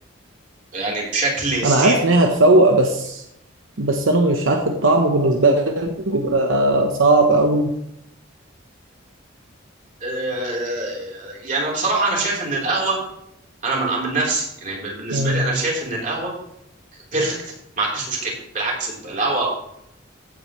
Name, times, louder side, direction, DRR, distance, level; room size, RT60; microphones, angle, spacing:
voice 1, 0.7-1.9 10.0-13.0 13.6-16.3 17.1-17.4 17.8-19.5, right 2 dB, 40° right, -3 dB, 3.9 m, -24 dB
voice 2, 1.6-3.2 3.8-7.7 15.1-15.5, right 2 dB, 80° right, 3 dB, 1.0 m, -17 dB
15.5 x 8.9 x 3.2 m, 0.78 s
head